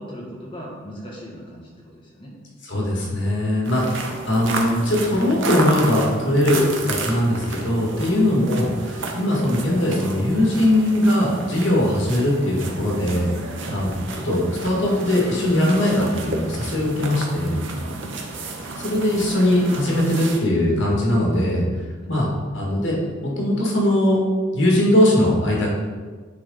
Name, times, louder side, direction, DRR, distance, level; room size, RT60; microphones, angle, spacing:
voice 1, 0.0-2.4 6.2-6.5 8.0-8.3 13.5-13.8 17.7-18.2 22.0-22.3, equal, 25° left, -4 dB, 1.8 m, -38 dB
voice 2, 2.7-13.3 13.7-13.9 14.2-17.6 18.8-21.6 22.1-22.3 22.5-23.0 23.2-24.2 24.5-25.7, left 1 dB, 75° left, -2 dB, 1.9 m, -20 dB
sound 1, 3.6-20.4, right 2 dB, 80° right, 0.9 m, -32 dB
9.4 x 3.9 x 3.8 m, 1.4 s
head